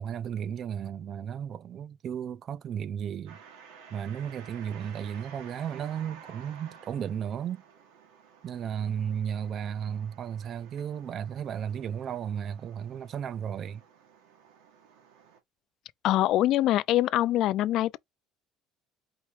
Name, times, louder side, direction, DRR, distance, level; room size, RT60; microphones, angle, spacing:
voice 1, 0.0-3.4 3.9-7.6 8.4-13.8, right 8 dB, 40° right, 0.4 m, -34 dB
sound 1, 3.3-15.4, right 6 dB, 90° right, 1.6 m, -53 dB
voice 2, 16.0-18.0, left 14 dB, 55° left, 0.3 m, -24 dB
4.7 x 2.8 x 3.2 m
cardioid pair, 145°, 0 cm